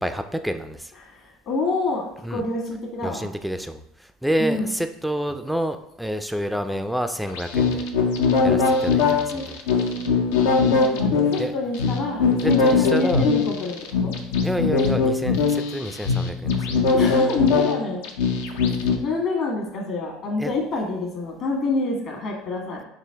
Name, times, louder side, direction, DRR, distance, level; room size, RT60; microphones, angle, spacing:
voice 1, 0.0-0.9 2.2-2.4 3.0-7.9 8.4-9.6 11.4-11.5 12.2-13.2 14.4-16.8 20.4-20.5, equal, ahead, 8 dB, 0.3 m, -28 dB
voice 2, 1.0-2.0 2.3-3.3 4.4-4.7 9.3-9.5 10.0-10.2 10.7-13.8 14.0-14.1 16.9-18.0 19.0-22.8, left 3 dB, 55° left, 0 dB, 1.3 m, -27 dB
sound 1, 7.3-19.0, left 4 dB, 80° left, 0.5 m, -21 dB
4.9 x 2.5 x 3.4 m, 0.80 s
hypercardioid pair, 85°, 0 cm